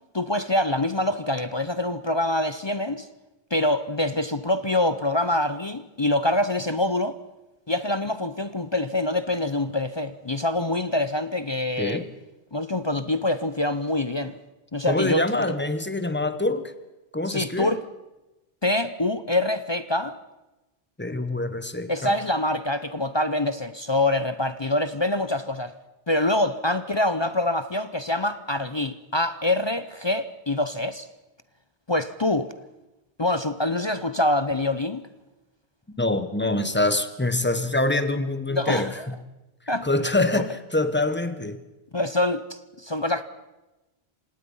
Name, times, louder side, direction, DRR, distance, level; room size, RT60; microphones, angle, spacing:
voice 1, 0.1-3.1 3.5-7.2 7.7-12.0 12.5-14.4 14.7-15.5 17.3-17.8 18.6-20.2 21.9-25.7 26.1-31.1 31.9-32.5 33.2-35.0 38.5-39.1 39.7-39.9 41.9-43.2, left 1 dB, 30° left, 13 dB, 0.7 m, -25 dB
voice 2, 11.8-12.1 14.9-16.7 17.1-17.7 21.0-22.2 36.0-38.9 39.8-41.6, left 2 dB, 10° left, 11 dB, 1.1 m, -25 dB
27.0 x 18.0 x 5.6 m, 1.0 s
omnidirectional pair, 1.1 m